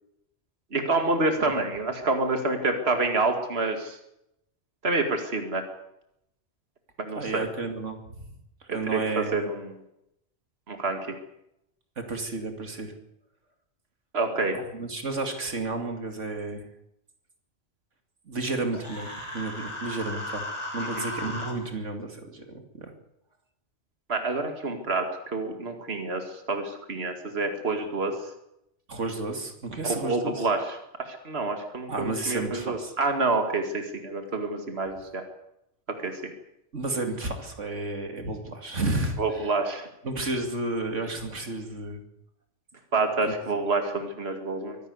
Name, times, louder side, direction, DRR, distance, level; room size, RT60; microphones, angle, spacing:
voice 1, 0.7-4.0 4.8-5.6 7.1-7.5 8.7-9.7 10.7-11.0 14.1-14.6 20.8-21.1 24.1-28.1 29.8-30.8 31.1-35.2 36.0-36.3 39.2-39.9 40.2-40.3 42.9-44.8, right 3 dB, 60° right, 5 dB, 2.4 m, -28 dB
voice 2, 7.1-8.3 8.7-9.5 12.0-12.9 14.5-16.7 18.3-22.9 28.9-30.5 31.9-32.9 36.7-39.5 40.0-42.0 43.2-43.4, right 2 dB, 85° right, 5 dB, 2.9 m, -32 dB
Human voice, 18.7-21.5, left 1 dB, 25° left, 3.7 m, -35 dB
24.0 x 12.0 x 9.6 m, 0.82 s
omnidirectional pair, 1.2 m